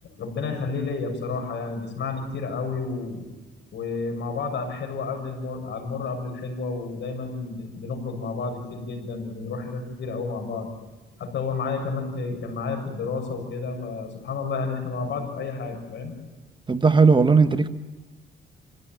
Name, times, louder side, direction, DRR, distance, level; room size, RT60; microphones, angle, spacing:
voice 1, 0.0-3.3 3.7-10.7 11.2-16.1, left 4 dB, 65° left, 4 dB, 7.1 m, -31 dB
voice 2, 16.7-17.7, right 4 dB, 25° right, 9 dB, 1.1 m, -17 dB
27.0 x 16.5 x 9.3 m, 1.1 s
cardioid pair, 90°, 20 cm